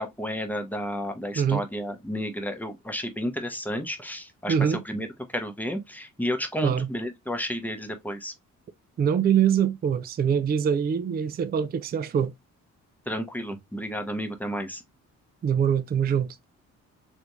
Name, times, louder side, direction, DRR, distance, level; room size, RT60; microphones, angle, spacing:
voice 1, 0.0-4.5 4.9-5.1 5.3-8.3 13.1-14.8, equal, 5° left, 0.8 m, -31 dB
voice 2, 1.4-1.7 4.5-4.8 6.6-6.9 9.0-12.3 15.4-16.4, right 8 dB, 30° right, 0.4 m, -24 dB
3.3 x 2.6 x 3.0 m
cardioid pair, 90°, 30 cm